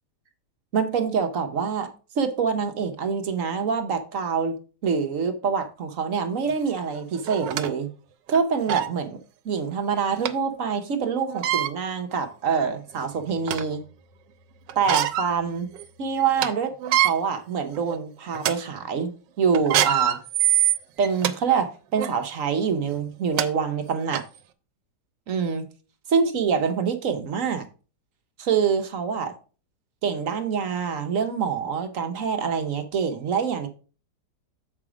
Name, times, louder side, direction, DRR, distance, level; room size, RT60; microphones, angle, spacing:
voice 1, 0.7-1.9 2.1-4.6 4.8-7.9 8.3-9.2 9.4-13.8 14.7-15.7 16.0-20.2 21.0-24.2 25.3-25.6 26.1-27.7 28.4-29.3 30.0-33.7, right 6 dB, 55° right, 1.1 m, -25 dB
sound 1, 6.5-6.6 7.2-7.7 8.3-8.4 8.7-8.9 10.2-10.3 11.3-11.7 12.5-12.6 13.0-13.7 14.7-15.3 15.7-15.8 16.2-16.5 16.8-17.1 17.7-17.9 18.3-18.5 19.5-21.3 21.9-22.1 23.0-23.1 23.4-23.5 24.1-24.2, right 11 dB, 90° right, 1.3 m, -23 dB
7.4 x 4.9 x 4.9 m
omnidirectional pair, 1.9 m